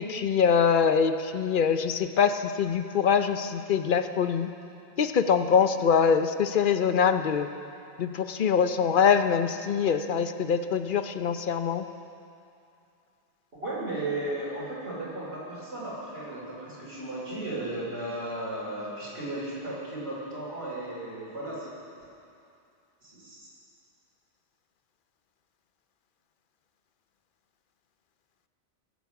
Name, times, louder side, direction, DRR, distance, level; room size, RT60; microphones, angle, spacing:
voice 1, 0.0-4.5 5.0-7.5 8.0-11.8, left 6 dB, 55° left, 9 dB, 0.7 m, -24 dB
voice 2, 13.5-21.7 23.0-23.5, right 1 dB, 70° right, -9 dB, 3.5 m, -35 dB
22.0 x 8.3 x 5.9 m, 2.6 s
omnidirectional pair, 1.2 m